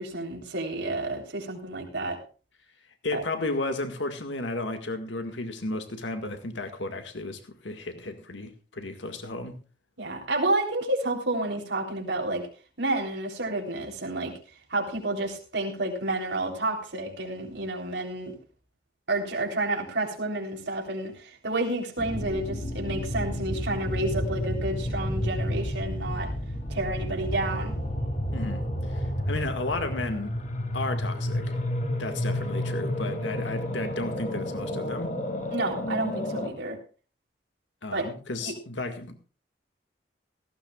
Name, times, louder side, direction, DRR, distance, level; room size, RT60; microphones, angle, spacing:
voice 1, 0.0-2.2 3.1-3.2 10.0-12.5 12.8-14.3 14.7-18.3 19.1-26.3 26.7-27.7 35.5-36.8 37.9-38.1 38.5-38.6, right 2 dB, 75° right, 1 dB, 3.8 m, -30 dB
voice 2, 3.0-9.6 28.3-30.3 30.7-31.5 32.0-35.2 37.8-39.2, left 2 dB, 85° left, 7 dB, 1.9 m, -33 dB
sound 1, 22.0-36.5, left 1 dB, 40° left, 2.5 m, -31 dB
17.5 x 15.5 x 2.4 m, 0.36 s
head